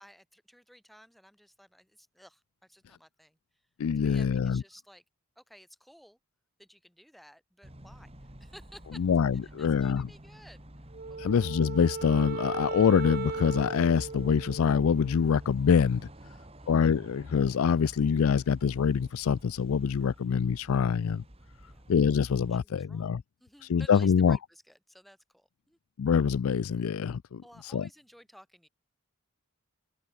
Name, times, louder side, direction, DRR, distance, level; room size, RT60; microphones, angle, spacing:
voice 1, 0.0-3.6 3.9-5.0 5.3-6.2 6.6-9.0 9.4-11.3 16.2-16.7 21.0-21.2 21.6-21.9 22.5-23.1 23.4-25.8 27.4-28.7, equal, ahead, 3.2 m, -56 dB
voice 2, 3.8-4.6 9.0-10.1 11.2-16.0 16.7-21.2 21.9-23.2 23.7-24.4 26.0-27.4 27.7-27.9, left 6 dB, 75° left, 0.4 m, -25 dB
sound 1, 7.6-22.6, right 1 dB, 25° right, 3.1 m, -50 dB
Wind instrument woodwind instrument, 10.9-15.4, right 4 dB, 40° right, 0.5 m, -37 dB
open air
head